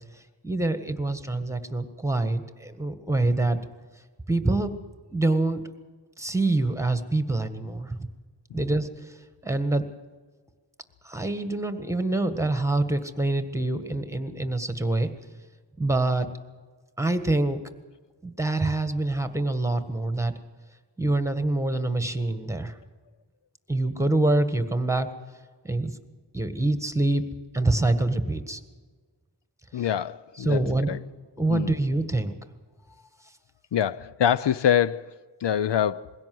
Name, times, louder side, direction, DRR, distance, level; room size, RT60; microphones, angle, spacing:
voice 1, 0.4-3.6 4.3-4.8 5.1-5.6 6.2-8.1 8.5-8.9 9.4-9.8 11.0-15.1 15.8-16.3 17.0-17.6 18.2-20.3 21.0-22.8 23.7-25.1 25.6-25.9 26.3-27.2 27.5-28.6 29.8-29.9 30.3-30.9 31.4-32.3, right 2 dB, 5° right, 1.6 m, -25 dB
voice 2, 29.7-31.0 31.5-31.8 33.7-36.1, left 9 dB, 70° left, 0.6 m, -25 dB
21.5 x 16.5 x 7.8 m
wide cardioid pair, 70°, 45 cm